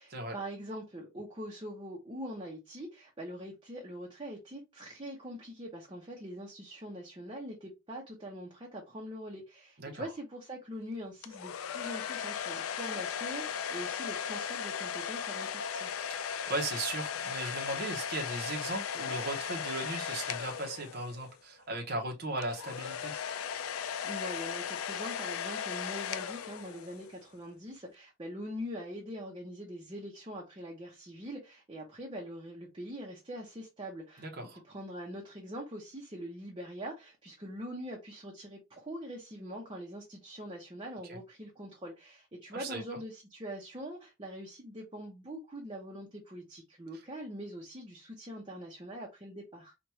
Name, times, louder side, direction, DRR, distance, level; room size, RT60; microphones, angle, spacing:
voice 1, 0.0-16.0 24.0-49.7, equal, 25° right, 0.8 m, -43 dB
sound 1, 11.2-21.4 22.4-27.1, left 8 dB, 85° left, 0.4 m, -37 dB
voice 2, 16.1-23.3 34.2-34.6 41.1-41.2 42.5-42.8, right 2 dB, 50° right, 0.9 m, -37 dB
4.8 x 2.5 x 2.9 m
head